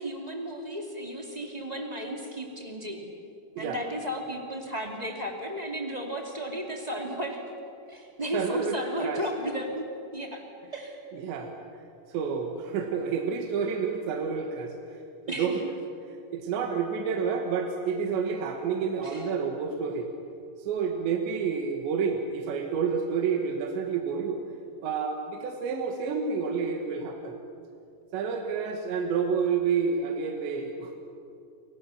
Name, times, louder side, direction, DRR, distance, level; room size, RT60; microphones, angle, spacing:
voice 1, 0.0-3.0 3.6-7.4 7.9-9.8 10.1-10.4 10.7-11.0 15.3-15.7 19.0-19.3, equal, 15° right, 1 dB, 1.3 m, -34 dB
voice 2, 8.3-9.3 11.1-11.6 12.1-15.0 15.3-15.6 16.3-20.1 20.6-24.4 24.8-27.4 28.1-31.0, right 6 dB, 75° right, 3 dB, 3.7 m, -29 dB
29.0 x 24.5 x 7.1 m, 2.6 s
omnidirectional pair, 5.3 m